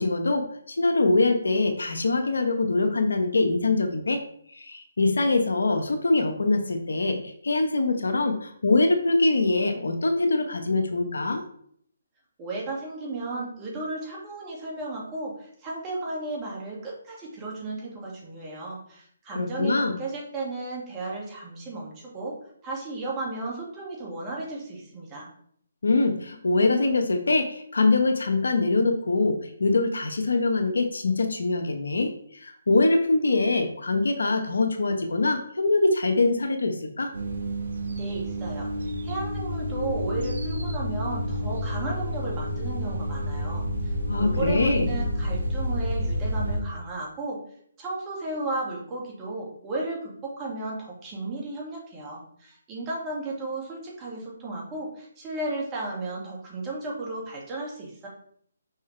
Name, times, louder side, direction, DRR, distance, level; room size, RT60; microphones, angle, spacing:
voice 1, 0.0-4.2 4.5-11.4 19.3-20.0 25.8-37.1 44.1-44.9, left 3 dB, 80° left, 6 dB, 1.1 m, -23 dB
voice 2, 12.4-22.3 22.6-25.3 37.9-38.7 39.0-47.4 47.8-58.1, right 2 dB, 20° right, -3 dB, 2.2 m, -34 dB
sound 1, 37.1-46.6, equal, 65° right, 1.4 m, -29 dB
6.1 x 4.7 x 3.4 m, 0.64 s
figure-of-eight pair, 150°, 0 cm